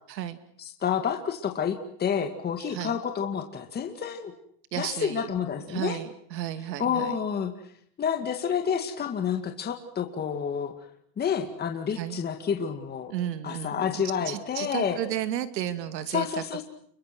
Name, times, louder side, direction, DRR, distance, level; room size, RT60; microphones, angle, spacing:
voice 1, 0.1-0.4 2.7-3.0 4.7-5.3 5.7-7.2 12.0-12.2 13.1-13.9 14.2-16.6, right 11 dB, 85° right, 11 dB, 2.7 m, -33 dB
voice 2, 0.6-4.3 4.7-6.0 6.8-7.5 8.0-10.7 11.2-13.1 13.4-15.0 16.1-16.6, left 7 dB, 20° left, 5 dB, 2.2 m, -29 dB
29.0 x 23.5 x 6.2 m, 0.67 s
supercardioid pair, 140°, 49 cm